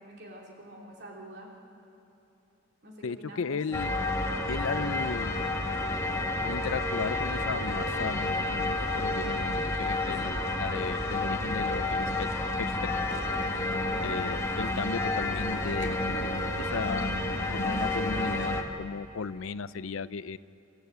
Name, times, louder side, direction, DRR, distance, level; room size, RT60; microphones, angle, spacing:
voice 1, 0.0-1.5 2.8-3.6, right 1 dB, 50° right, -1 dB, 2.9 m, -46 dB
voice 2, 3.0-3.9 4.5-5.5 6.4-12.3 12.6-12.7 14.0-16.3 16.6-20.4, left 5 dB, 70° left, 16 dB, 0.5 m, -35 dB
sound 1, 3.7-18.6, left 2 dB, 15° left, 1.5 m, -30 dB
sound 2, 12.9-18.5, left 5 dB, 40° left, 1.0 m, -41 dB
29.0 x 13.5 x 8.1 m, 2.9 s
head